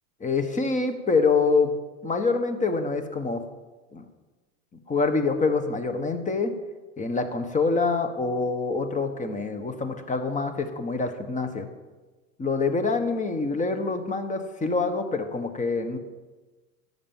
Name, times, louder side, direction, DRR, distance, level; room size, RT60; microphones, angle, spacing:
voice 1, 0.2-1.8 2.0-3.5 3.9-4.0 4.9-6.6 7.0-11.7 12.4-16.0, left 4 dB, 15° left, 8 dB, 1.4 m, -26 dB
11.0 x 8.0 x 7.2 m, 1.3 s
hypercardioid pair, 100°, 42 cm